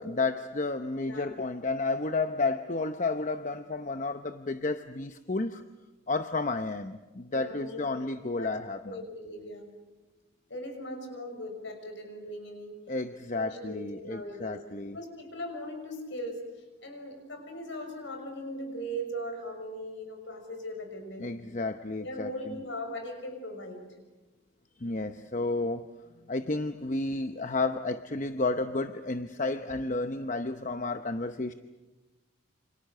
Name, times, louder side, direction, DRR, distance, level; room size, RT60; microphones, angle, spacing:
voice 1, 0.0-5.6 6.1-9.0 12.9-15.0 21.2-22.3 24.8-25.8 26.3-31.5, left 3 dB, 35° left, 0.8 m, -31 dB
voice 2, 7.3-8.0 8.4-8.5 8.8-9.7 10.5-12.7 13.3-14.6 14.9-21.3 22.0-23.9, equal, 60° left, 6.2 m, -39 dB
28.0 x 27.0 x 6.6 m
head